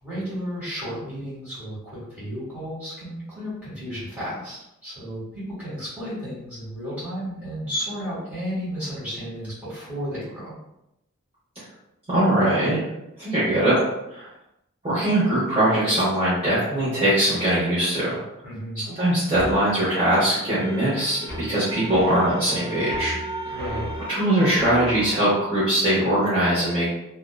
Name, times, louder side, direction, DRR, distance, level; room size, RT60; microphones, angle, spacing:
voice 1, 0.0-4.6 4.8-10.6 18.4-18.8 23.5-23.9, equal, 5° right, -10 dB, 1.3 m, -33 dB
voice 2, 12.1-12.8 13.2-13.8 14.1-14.3 14.8-18.2 18.8-21.2 21.5-23.1 23.4-23.5 24.1-26.9, right 1 dB, 25° right, -12 dB, 0.8 m, -21 dB
sound 1, 19.4-25.1, right 1 dB, 15° left, 1.2 m, -34 dB
2.6 x 2.1 x 2.2 m, 0.86 s
head